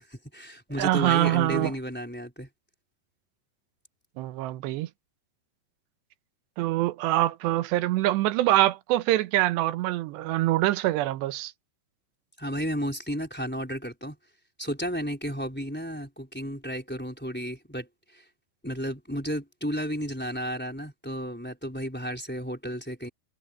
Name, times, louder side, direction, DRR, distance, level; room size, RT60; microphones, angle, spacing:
voice 1, 0.0-2.5 12.4-14.2 14.6-18.3 18.6-23.1, equal, 5° left, 3.8 m, -33 dB
voice 2, 0.8-1.7 4.2-4.9 6.6-11.5, right 15 dB, 85° right, 3.1 m, -24 dB
omnidirectional pair, 4.8 m